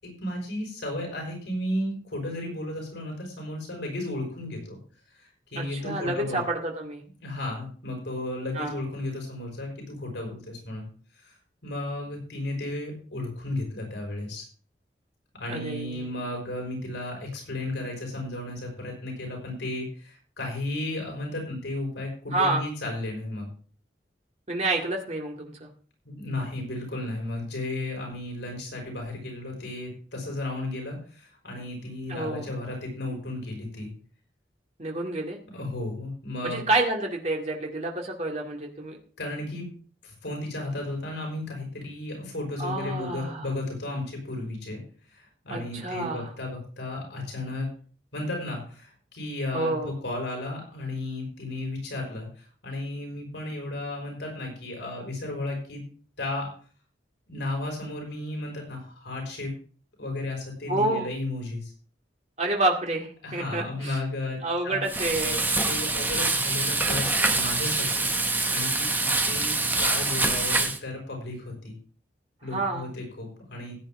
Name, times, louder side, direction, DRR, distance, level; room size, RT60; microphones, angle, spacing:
voice 1, 0.0-4.8 5.1-6.4 7.2-10.9 11.2-11.4 11.6-14.4 15.4-23.5 26.1-33.9 35.5-36.7 39.2-39.7 40.0-44.8 45.1-47.7 48.1-55.8 56.2-56.5 57.3-59.5 60.0-61.7 63.2-64.4 64.6-64.8 65.6-71.8 72.4-73.8, left 2 dB, 80° left, 1 dB, 5.5 m, -34 dB
voice 2, 5.6-7.0 8.6-8.8 15.5-16.1 22.3-22.6 24.5-25.7 32.1-32.5 34.8-35.4 36.4-39.0 42.6-43.4 45.5-46.3 49.5-49.9 60.7-61.1 62.4-64.0 64.4-65.4 72.5-72.9, right 2 dB, 40° right, 0 dB, 2.1 m, -28 dB
Frying (food), 64.9-70.8, right 3 dB, 10° right, 0.9 m, -25 dB
15.5 x 8.9 x 3.7 m, 0.41 s
head